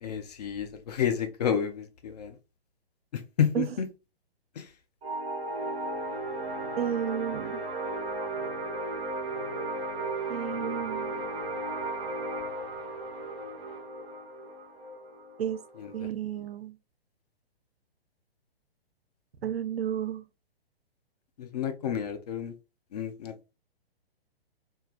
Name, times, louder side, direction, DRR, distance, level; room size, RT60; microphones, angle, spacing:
voice 1, 0.0-2.3 3.1-3.9 4.6-4.7 15.8-16.1 21.4-22.5 22.9-23.5, left 8 dB, 40° left, 0.5 m, -30 dB
sound 1, 5.0-16.1, right 2 dB, 20° right, 0.9 m, -35 dB
voice 2, 6.8-7.6 10.3-11.3 15.4-15.6 15.9-16.8 19.4-20.2, right 9 dB, 75° right, 0.5 m, -32 dB
3.2 x 2.2 x 2.3 m
figure-of-eight pair, 125°, 31 cm